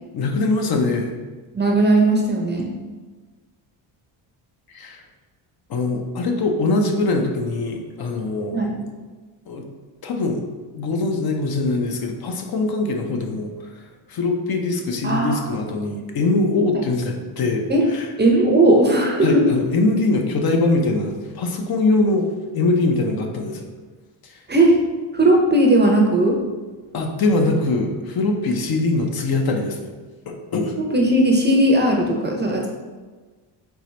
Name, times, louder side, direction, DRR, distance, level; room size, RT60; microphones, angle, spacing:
voice 1, 0.1-1.2 4.7-5.0 5.7-8.6 9.5-9.7 10.0-10.4 10.7-18.1 19.2-23.7 24.2-24.4 26.9-29.9 30.3-30.7, left 2 dB, 50° left, 3 dB, 0.7 m, -22 dB
voice 2, 1.5-2.7 8.5-8.7 15.0-15.5 17.7-17.9 18.2-19.4 24.5-24.8 25.1-26.4 30.9-32.7, right 1 dB, 20° right, 0 dB, 0.6 m, -17 dB
4.6 x 2.9 x 3.2 m, 1.3 s
cardioid pair, 90°, 47 cm